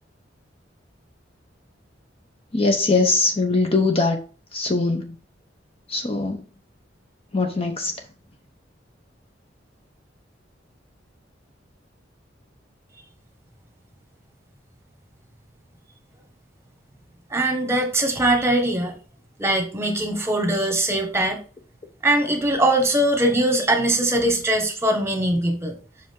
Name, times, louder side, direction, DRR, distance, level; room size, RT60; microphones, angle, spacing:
voice 1, 2.5-4.2 4.5-5.2 5.9-6.4 7.3-7.9, left 3 dB, 30° left, 0.7 m, -21 dB
voice 2, 17.3-18.9 19.4-21.4 22.0-25.7, right 1 dB, 15° right, 1.4 m, -21 dB
5.8 x 5.0 x 3.7 m
head